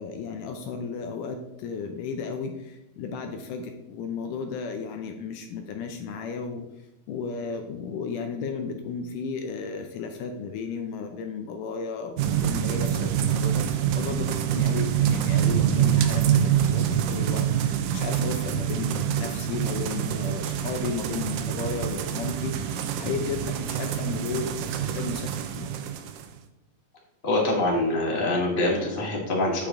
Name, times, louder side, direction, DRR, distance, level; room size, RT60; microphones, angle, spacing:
voice 1, 0.0-6.6 7.1-25.7, left 5 dB, 75° left, 5 dB, 2.1 m, -34 dB
sound 1, 12.2-26.3, right 9 dB, 80° right, 2.2 m, -26 dB
voice 2, 27.2-29.7, left 2 dB, 20° left, -4 dB, 1.6 m, -25 dB
8.5 x 6.7 x 3.7 m, 0.92 s
omnidirectional pair, 3.9 m